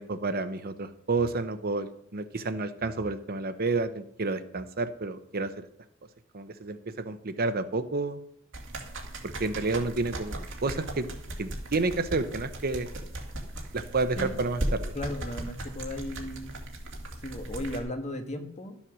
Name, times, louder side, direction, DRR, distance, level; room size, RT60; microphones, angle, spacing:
voice 1, 0.0-5.7 6.3-8.2 9.2-11.1 11.4-12.9 13.7-14.9, right 3 dB, 50° right, 11 dB, 0.8 m, -30 dB
sound 1, 8.5-17.8, right 1 dB, 65° right, 2.2 m, -37 dB
voice 2, 14.9-16.6 17.2-18.8, left 1 dB, 35° left, 5 dB, 1.5 m, -36 dB
12.5 x 7.3 x 6.1 m, 0.69 s
head